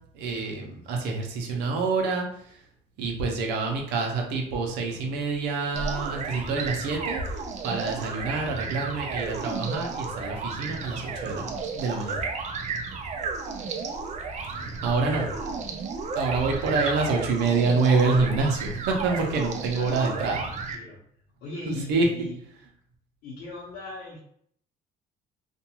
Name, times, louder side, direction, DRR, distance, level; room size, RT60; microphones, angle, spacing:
voice 1, 0.1-2.6 3.0-7.2 7.6-12.2 14.5-15.3 16.1-20.4 21.7-22.1, right 4 dB, 85° right, 1 dB, 0.7 m, -27 dB
sound 1, 5.7-20.8, right 4 dB, 45° right, 0.5 m, -33 dB
voice 2, 14.5-14.9 15.2-15.5 19.7-21.0 21.4-22.3 23.2-24.2, left 2 dB, 80° left, -8 dB, 0.9 m, -40 dB
2.5 x 2.3 x 2.9 m, 0.65 s
cardioid pair, 110°, 17 cm